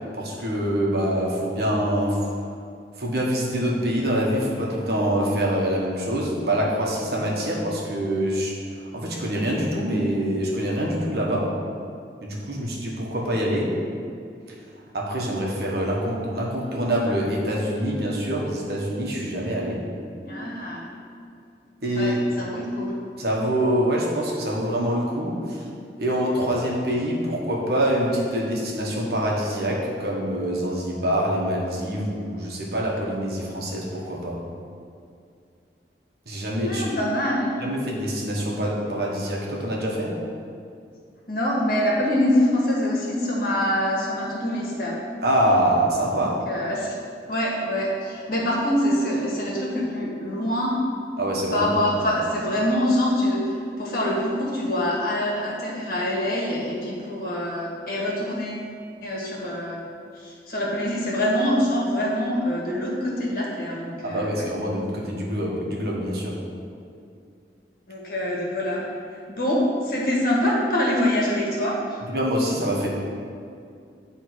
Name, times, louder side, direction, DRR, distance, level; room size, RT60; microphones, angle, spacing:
voice 1, 0.1-2.2 3.0-11.5 12.2-13.7 14.9-19.8 21.8-22.1 23.2-25.6 26.0-34.4 36.3-36.9 37.6-40.1 45.2-46.4 51.2-51.7 64.0-66.4 72.1-72.9, equal, 60° right, -3 dB, 1.3 m, -25 dB
voice 2, 20.2-20.9 21.9-22.9 36.6-37.5 41.3-45.0 46.2-47.0 47.3-50.7 51.5-58.6 59.0-59.8 60.1-64.5 67.9-68.8 69.1-72.0, left 1 dB, 55° left, -4 dB, 1.7 m, -25 dB
10.0 x 3.5 x 4.7 m, 2.3 s
head